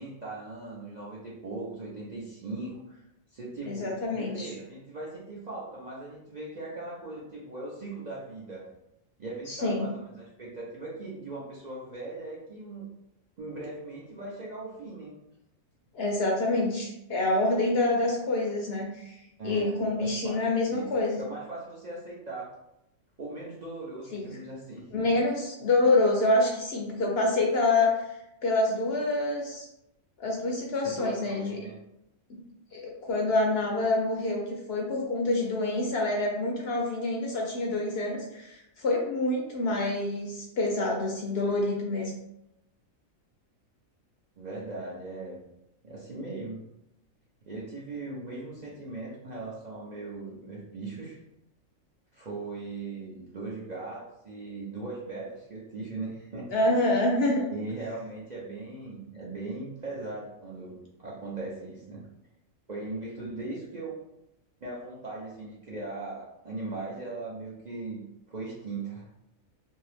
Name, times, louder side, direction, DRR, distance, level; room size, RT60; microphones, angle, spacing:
voice 1, 0.0-3.0 3.3-8.7 9.2-12.9 13.4-15.1 19.4-22.5 23.2-24.8 30.8-31.8 44.4-45.4 45.8-46.6 47.5-51.2 52.1-56.5 57.5-62.0 62.7-64.0 64.6-68.0 68.3-69.1, right 2 dB, 50° right, -6 dB, 0.5 m, -39 dB
voice 2, 3.7-4.5 9.5-9.9 15.9-19.2 19.4-21.2 24.1-24.2 24.9-28.1 28.4-29.7 30.2-31.6 32.3-32.4 32.7-42.1 56.5-57.5, left 2 dB, 60° left, -1 dB, 0.7 m, -27 dB
2.8 x 2.6 x 3.3 m, 0.85 s
omnidirectional pair, 1.4 m